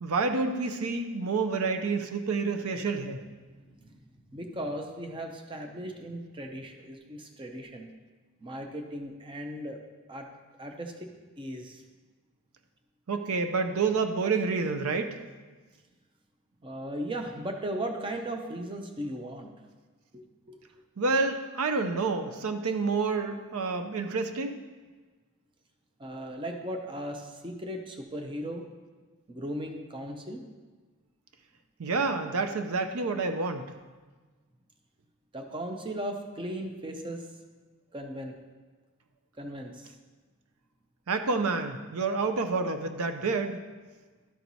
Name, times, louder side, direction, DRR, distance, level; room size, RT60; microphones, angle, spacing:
voice 1, 0.0-3.2 13.1-15.2 21.0-24.6 31.8-33.7 41.1-43.6, right 4 dB, 75° right, 7 dB, 0.5 m, -28 dB
voice 2, 3.6-4.0 4.3-7.9 8.4-9.8 10.1-10.3 10.6-11.8 16.6-19.5 20.1-20.6 26.0-28.6 29.3-30.4 35.3-37.3 37.9-38.3 39.4-40.0, right 1 dB, 20° right, 3 dB, 0.6 m, -37 dB
12.5 x 4.5 x 4.1 m, 1.3 s
head